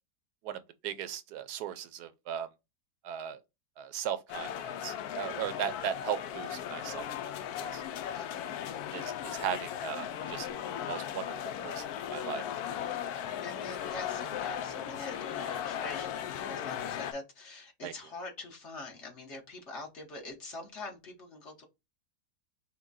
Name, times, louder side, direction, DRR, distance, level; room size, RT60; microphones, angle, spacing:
voice 1, 0.4-2.5 3.0-3.4 3.8-7.3 7.7-7.8 8.9-10.5 10.9-11.3 11.6-11.8 12.1-12.4 17.8-17.9, right 8 dB, 80° right, 1.1 m, -37 dB
sound 1, 4.3-17.1, left 9 dB, 75° left, 1.1 m, -37 dB
voice 2, 8.1-9.1 13.4-21.6, left 2 dB, 45° left, 1.4 m, -45 dB
5.8 x 2.2 x 4.0 m
omnidirectional pair, 1.7 m